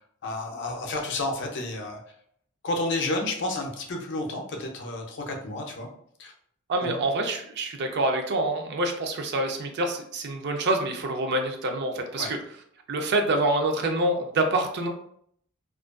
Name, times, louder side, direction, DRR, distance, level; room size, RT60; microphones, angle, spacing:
voice 1, 0.2-2.0 2.6-5.9 6.2-6.3 6.8-7.0 12.2-12.3, left 2 dB, 55° left, 2 dB, 0.5 m, -31 dB
voice 2, 6.7-12.4 12.9-14.9, right 2 dB, 55° right, 4 dB, 0.4 m, -26 dB
2.4 x 2.2 x 2.3 m, 0.66 s
head